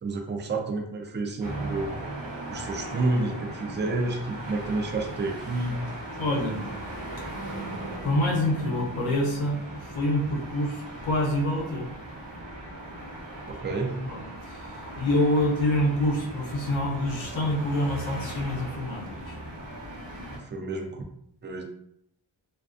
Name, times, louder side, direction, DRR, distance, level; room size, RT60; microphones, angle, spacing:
voice 1, 0.0-2.1 2.5-5.7 13.5-14.0 20.3-21.0 21.4-21.6, right 2 dB, 25° right, 2 dB, 0.4 m, -30 dB
sound 1, 1.4-20.4, right 1 dB, 45° right, 0.9 m, -38 dB
voice 2, 6.2-6.6 8.0-11.9 13.7-19.4, left 1 dB, 80° left, -1 dB, 0.7 m, -27 dB
2.4 x 2.3 x 2.4 m, 0.75 s
wide cardioid pair, 65°, 47 cm